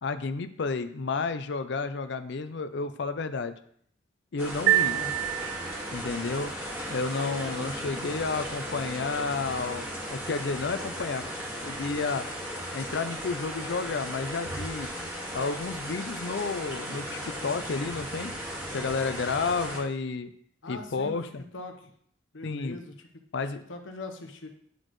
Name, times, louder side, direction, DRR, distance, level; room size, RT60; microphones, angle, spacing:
voice 1, 0.0-3.5 4.3-5.0 5.9-6.5 6.9-11.2 11.6-12.3 12.7-14.9 15.3-18.3 18.7-20.3 20.7-21.4 22.4-22.8 23.3-23.6, left 4 dB, 65° left, 11 dB, 0.5 m, -31 dB
sound 1, 4.4-19.8, equal, 10° right, 1.8 m, -36 dB
sound 2, 4.7-6.1, right 13 dB, 80° right, 0.4 m, -26 dB
voice 2, 4.8-5.1 7.4-7.9 20.6-21.2 21.5-21.9 22.3-23.0 23.7-24.5, left 2 dB, 90° left, 5 dB, 1.0 m, -41 dB
11.0 x 4.3 x 3.1 m, 0.64 s
head